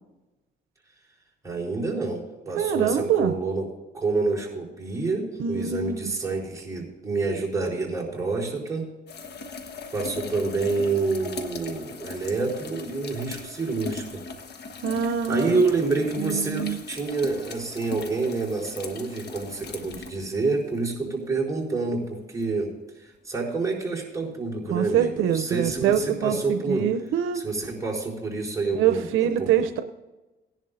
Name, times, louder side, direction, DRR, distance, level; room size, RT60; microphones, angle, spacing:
voice 1, 1.4-3.7 3.9-8.9 9.9-14.2 15.3-26.9 27.3-29.5, right 3 dB, 15° right, -3 dB, 4.1 m, -28 dB
voice 2, 2.6-3.3 5.4-6.1 14.8-15.6 16.2-16.8 24.7-27.4 28.7-29.8, right 8 dB, 85° right, 7 dB, 0.7 m, -25 dB
sound 1, 9.1-20.9 22.4-22.5 27.4-27.5, left 4 dB, 55° left, 1.3 m, -39 dB
17.5 x 11.0 x 2.6 m, 1.1 s
cardioid pair, 90°, 20 cm